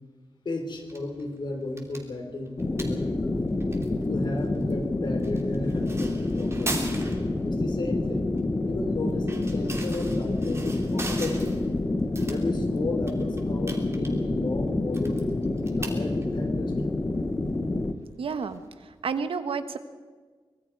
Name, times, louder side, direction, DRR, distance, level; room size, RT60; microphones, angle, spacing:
voice 1, 0.4-3.7 4.0-6.9 7.4-8.3 8.6-11.8 12.3-16.9, left 2 dB, 55° left, 4 dB, 4.0 m, -34 dB
sound 1, 0.7-19.1, right 2 dB, 30° right, 3.1 m, -42 dB
sound 2, 2.6-17.9, left 2 dB, 25° left, 1.1 m, -28 dB
voice 2, 18.2-19.8, right 5 dB, 85° right, 9 dB, 1.4 m, -31 dB
24.5 x 21.5 x 4.9 m, 1.4 s
wide cardioid pair, 150°, 9 cm